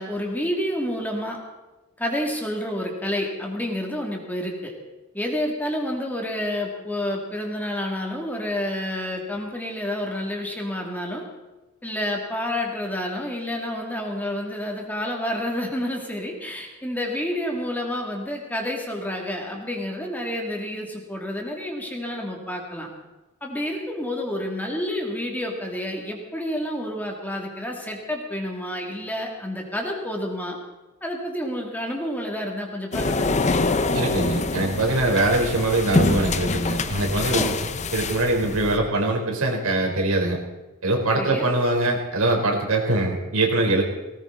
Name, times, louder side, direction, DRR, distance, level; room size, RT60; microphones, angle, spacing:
voice 1, 0.0-1.4 2.0-4.7 5.1-11.2 11.8-22.9 23.4-30.6 31.0-33.8 37.3-37.6 41.1-41.5, left 1 dB, 10° left, 0 dB, 2.7 m, -29 dB
sound 1, 32.9-38.8, left 3 dB, 35° left, 0.8 m, -25 dB
voice 2, 33.9-37.5 37.9-40.4 40.8-43.8, right 2 dB, 85° right, 0 dB, 4.2 m, -22 dB
19.0 x 18.5 x 4.1 m, 1.1 s
head